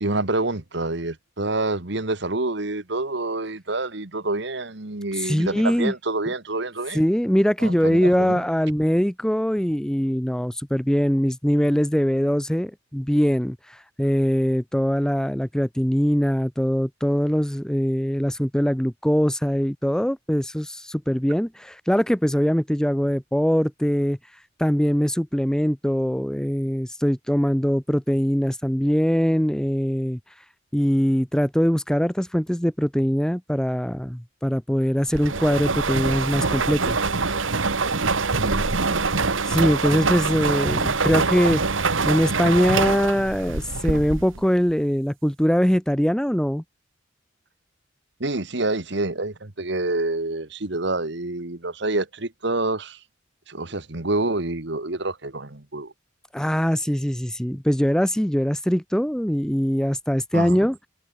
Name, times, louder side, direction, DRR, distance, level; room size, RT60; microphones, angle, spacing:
voice 1, 0.0-7.0 7.6-8.4 38.4-39.1 48.2-53.0 53.5-55.9 60.3-60.6, right 2 dB, 60° right, 1.8 m, -27 dB
voice 2, 5.1-5.9 6.9-24.2 24.6-30.2 30.7-37.0 39.4-41.7 42.1-46.6 56.3-60.8, equal, 5° left, 0.7 m, -22 dB
sound 1, 35.1-44.5, right 4 dB, 85° right, 1.9 m, -24 dB
head